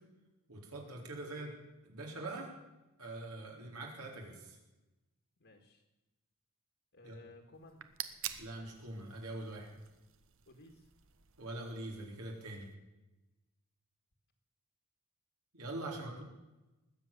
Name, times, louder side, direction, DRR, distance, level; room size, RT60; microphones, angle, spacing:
voice 1, 0.5-1.5 1.8-2.5 3.0-4.6 7.0-7.2 8.4-9.7 11.4-12.7 15.5-16.2, right 2 dB, 80° right, 0 dB, 4.3 m, -43 dB
voice 2, 5.4-5.8 6.9-7.8 10.5-10.9 15.9-16.2, left 2 dB, 60° left, 2 dB, 2.0 m, -57 dB
sound 1, 7.5-12.7, right 11 dB, 60° right, 1.0 m, -48 dB
20.5 x 8.1 x 6.9 m, 1.0 s
head